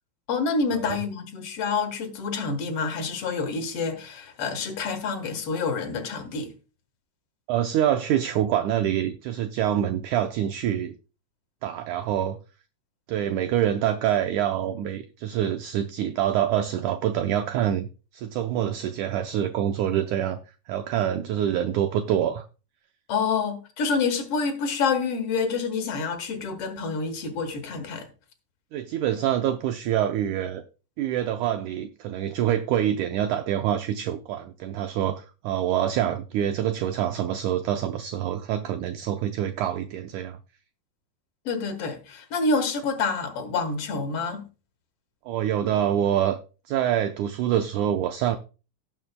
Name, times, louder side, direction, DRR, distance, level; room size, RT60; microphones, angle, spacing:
voice 1, 0.3-6.5 23.1-28.1 41.5-44.4, left 4 dB, 55° left, 1.9 m, -27 dB
voice 2, 7.5-10.9 11.6-12.4 13.1-20.4 20.7-22.5 28.7-30.6 31.0-40.4 45.3-46.4 46.7-48.4, right 10 dB, 80° right, 1.8 m, -26 dB
18.0 x 7.0 x 2.2 m
omnidirectional pair, 4.1 m